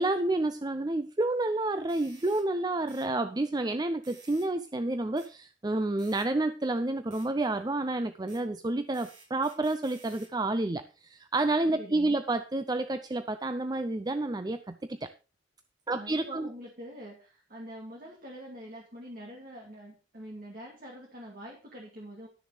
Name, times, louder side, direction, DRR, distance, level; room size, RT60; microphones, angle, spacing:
voice 1, 0.0-15.1 15.9-16.5, right 2 dB, 20° right, 10 dB, 0.5 m, -29 dB
sound 1, 1.9-2.5 2.9-3.1 4.0-4.5 5.2-5.3 6.0-6.3 7.1-7.3 8.3-8.4 8.9-10.3, right 4 dB, 80° right, 6.1 m, -54 dB
voice 2, 11.8-12.2 15.9-22.3, equal, 45° right, -1 dB, 2.5 m, -45 dB
12.0 x 6.8 x 5.1 m, 0.34 s
head